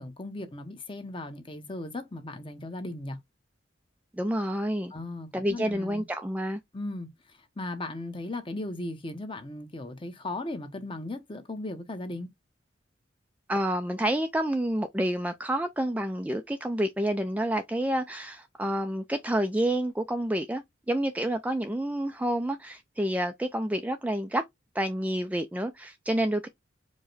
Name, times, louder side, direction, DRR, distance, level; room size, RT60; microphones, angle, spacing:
voice 1, 0.0-3.2 4.9-6.0 6.7-7.1 7.6-12.3, left 2 dB, 25° left, 0.8 m, -37 dB
voice 2, 4.1-4.9 5.3-6.6 13.5-24.4 24.7-26.5, right 1 dB, 10° right, 0.3 m, -29 dB
4.8 x 2.1 x 3.9 m
head